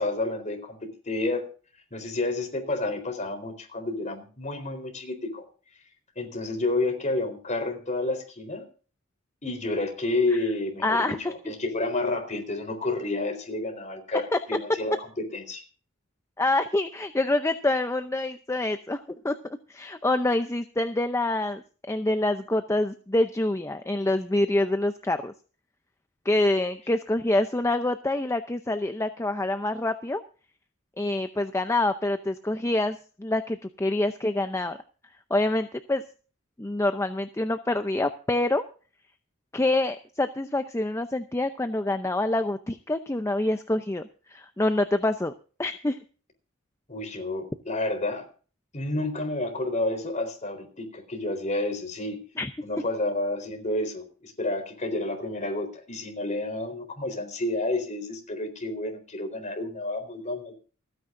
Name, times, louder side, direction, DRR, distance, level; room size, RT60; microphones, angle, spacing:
voice 1, 0.0-1.5 1.9-5.4 6.2-8.6 9.4-15.6 46.9-48.3 48.7-52.2 52.6-60.5, left 2 dB, 35° left, 6 dB, 4.1 m, -30 dB
voice 2, 10.8-11.3 14.3-14.4 16.4-19.3 19.7-21.6 21.9-25.3 26.2-30.2 31.0-34.8 35.3-36.0 36.6-38.6 39.5-45.3 45.6-46.0 52.4-52.5, left 2 dB, 15° left, 9 dB, 0.6 m, -26 dB
28.5 x 9.6 x 2.6 m, 0.39 s
head